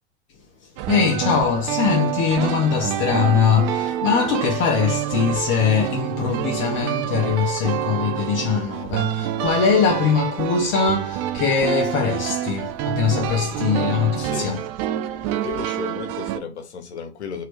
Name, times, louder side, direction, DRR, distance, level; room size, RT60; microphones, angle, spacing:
voice 1, 0.6-14.6 15.3-15.4, left 6 dB, 35° left, 0.8 m, -22 dB
sound 1, 0.8-16.4, right 11 dB, 35° right, 0.4 m, -27 dB
voice 2, 13.3-13.8 14.1-14.6 15.1-17.4, left 6 dB, 80° left, 1.0 m, -35 dB
3.1 x 2.7 x 3.0 m
hypercardioid pair, 95°, 33 cm